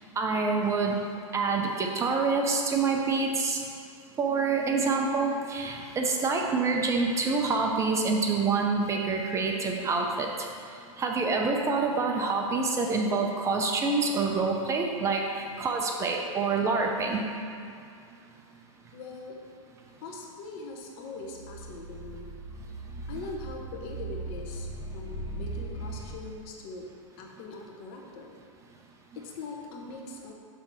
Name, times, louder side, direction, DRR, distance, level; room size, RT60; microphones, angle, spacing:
voice 1, 0.2-1.0 1.3-3.6 4.2-10.3 11.0-17.2, right 4 dB, 15° right, 1 dB, 0.5 m, -27 dB
voice 2, 18.9-19.4 20.0-22.3 23.1-24.7 24.9-26.9 27.2-28.3 29.1-30.3, left 3 dB, 45° left, -1 dB, 1.1 m, -41 dB
sound 1, 21.1-26.1, right 2 dB, 25° left, 1.5 m, -39 dB
5.6 x 3.9 x 6.1 m, 2.5 s
hypercardioid pair, 135°, 17 cm